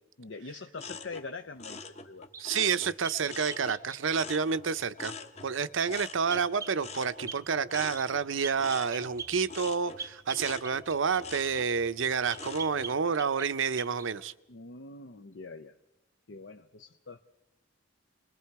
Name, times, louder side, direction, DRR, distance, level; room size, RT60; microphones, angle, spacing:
voice 1, 0.2-2.3 14.5-15.8 16.3-17.2, left 4 dB, 70° left, 0.7 m, -44 dB
sound 1, 0.8-3.8 4.1-13.0 13.4-13.8, left 4 dB, 35° left, 1.1 m, -45 dB
sound 2, 2.3-4.2 6.3-6.8 7.3-7.4 7.7-8.1 8.4-11.7 12.3-13.5 13.8-14.1, right 5 dB, 15° right, 0.7 m, -43 dB
voice 2, 2.4-5.1 5.4-14.3, right 6 dB, 75° right, 0.7 m, -29 dB
28.5 x 21.0 x 4.7 m
head